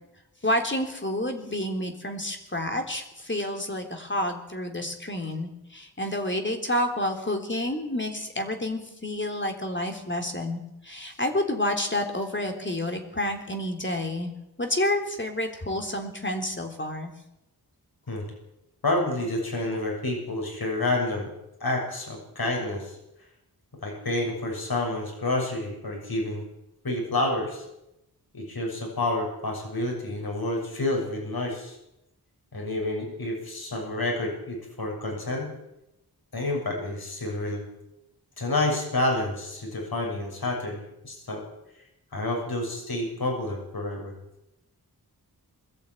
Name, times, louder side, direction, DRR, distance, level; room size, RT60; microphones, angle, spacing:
voice 1, 0.4-14.3 14.6-17.1, left 1 dB, 30° left, 3 dB, 3.6 m, -29 dB
voice 2, 18.8-21.3 21.6-23.0 23.8-26.4 26.8-27.6 28.3-31.8 32.5-35.5 36.3-37.7 38.4-41.4 42.1-44.1, left 2 dB, 65° left, 1 dB, 7.1 m, -29 dB
22.0 x 14.0 x 9.2 m, 0.87 s
wide cardioid pair, 85°, 39 cm